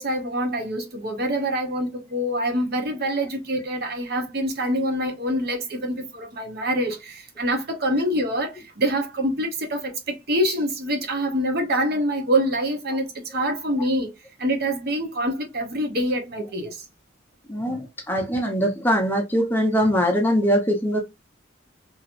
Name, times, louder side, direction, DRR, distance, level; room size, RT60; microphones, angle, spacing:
voice 1, 0.0-14.1 14.4-16.8, equal, 55° right, 0.9 m, -25 dB
voice 2, 17.5-21.0, equal, 10° left, 0.7 m, -22 dB
2.9 x 2.9 x 2.5 m
head